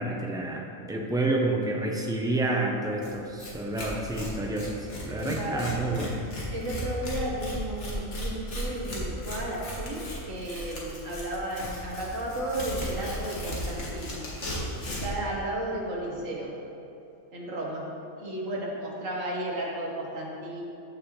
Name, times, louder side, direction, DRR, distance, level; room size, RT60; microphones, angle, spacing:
voice 1, 0.0-4.7 5.0-6.1, right 2 dB, 5° right, 0 dB, 0.6 m, -29 dB
Tearing, 3.0-3.1 3.4-3.5 3.8-15.2, equal, 60° left, 2.0 m, -36 dB
voice 2, 5.3-5.8 6.5-14.3 14.8-16.5 17.3-17.9 18.2-20.6, right 1 dB, 80° right, -3 dB, 1.9 m, -33 dB
14.5 x 6.1 x 3.2 m, 2.9 s
omnidirectional pair, 1.3 m